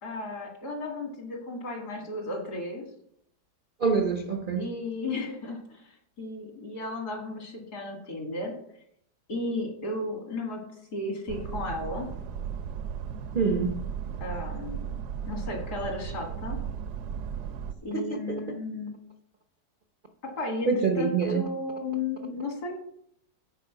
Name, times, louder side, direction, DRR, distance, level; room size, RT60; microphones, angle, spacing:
voice 1, 0.0-2.9 4.6-8.5 9.3-10.6 10.9-12.1 14.2-14.9 15.3-16.6 17.8-18.9 20.2-22.8, left 2 dB, 65° left, 2.7 m, -34 dB
voice 2, 3.8-4.7 13.3-13.7 17.9-18.6 20.7-21.4, right 5 dB, 50° right, 0.6 m, -26 dB
sound 1, 11.3-17.7, right 8 dB, 75° right, 1.2 m, -35 dB
9.2 x 4.7 x 5.9 m
omnidirectional pair, 1.8 m